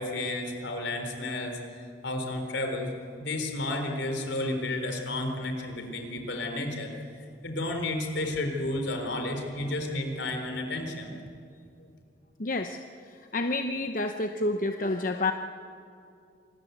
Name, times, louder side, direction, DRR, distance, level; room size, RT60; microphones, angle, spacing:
voice 1, 0.0-1.6 2.0-2.9 3.2-6.9 7.4-11.1, left 2 dB, 75° left, 4 dB, 4.0 m, -32 dB
voice 2, 12.4-12.8 13.0-15.3, left 2 dB, 45° left, 6 dB, 0.8 m, -29 dB
26.0 x 19.5 x 8.2 m, 2.5 s
head